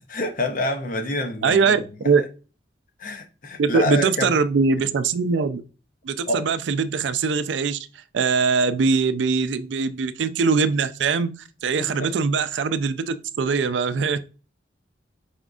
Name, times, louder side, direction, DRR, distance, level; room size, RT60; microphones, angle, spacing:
voice 1, 0.1-1.7 3.0-4.3 6.3-6.4 11.8-12.1, left 1 dB, 50° left, 0.7 m, -27 dB
voice 2, 1.4-2.2 3.6-5.6 6.0-11.3 11.6-14.2, right 5 dB, 80° right, 0.4 m, -22 dB
5.0 x 3.6 x 2.4 m
head